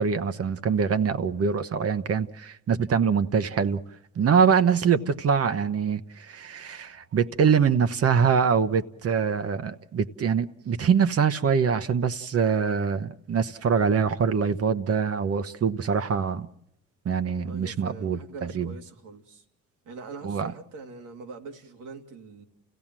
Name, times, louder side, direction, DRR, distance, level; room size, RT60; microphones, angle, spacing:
voice 1, 0.0-3.8 4.2-16.5 17.0-18.7 20.2-20.5, right 6 dB, 50° right, 1.0 m, -24 dB
voice 2, 17.5-19.4 19.8-22.4, right 4 dB, 90° right, 2.5 m, -43 dB
29.5 x 16.0 x 7.5 m
cardioid pair, 90°, 30 cm